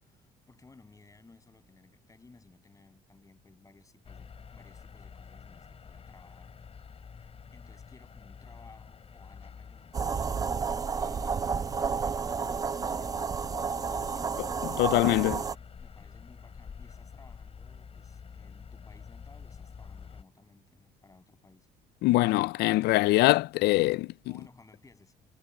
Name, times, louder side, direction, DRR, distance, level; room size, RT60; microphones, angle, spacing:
voice 1, 0.0-6.6 7.5-10.2 10.7-13.7 14.1-21.7 24.3-25.1, left 3 dB, 20° left, 7.1 m, -58 dB
sound 1, 4.0-20.2, left 6 dB, 35° left, 5.8 m, -48 dB
sound 2, 9.9-15.5, right 5 dB, 20° right, 0.4 m, -31 dB
voice 2, 14.8-15.4 22.0-24.1, left 19 dB, 75° left, 0.4 m, -23 dB
cardioid pair, 110°, 17 cm